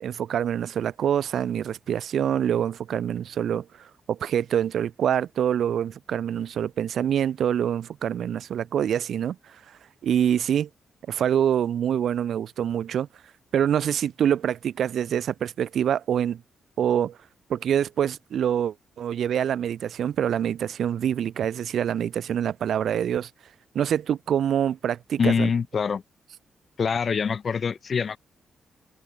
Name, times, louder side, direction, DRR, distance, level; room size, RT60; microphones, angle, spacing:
voice 1, 0.0-9.6 10.0-10.7 11.1-13.1 13.5-16.4 16.8-17.2 17.5-23.3 23.7-25.5, right 9 dB, 70° right, 0.5 m, -25 dB
voice 2, 25.2-26.0 26.8-28.2, left 6 dB, 40° left, 0.5 m, -24 dB
wide cardioid pair, 145°, 0 cm